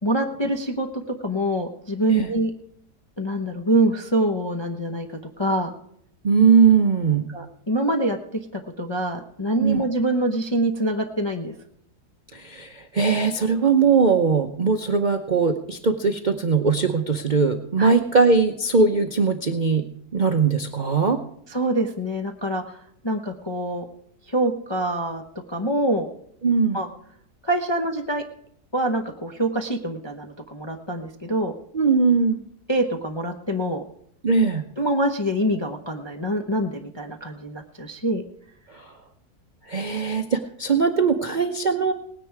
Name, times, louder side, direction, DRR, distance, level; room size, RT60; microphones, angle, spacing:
voice 1, 0.0-0.9 1.2-2.5 3.2-5.1 5.4-5.7 7.3-11.5 17.8-18.0 21.5-23.8 24.3-25.2 25.5-26.1 26.7-26.9 27.4-28.2 28.7-31.5 32.7-33.8 34.8-38.2, right 1 dB, 20° left, 2 dB, 0.7 m, -25 dB
voice 2, 6.2-7.3 9.6-9.8 12.3-19.9 20.1-21.2 26.4-26.8 31.7-32.4 34.2-34.6 38.7-38.9 39.7-41.9, right 5 dB, 40° right, 4 dB, 0.7 m, -20 dB
19.0 x 9.9 x 4.7 m, 0.70 s
omnidirectional pair, 1.7 m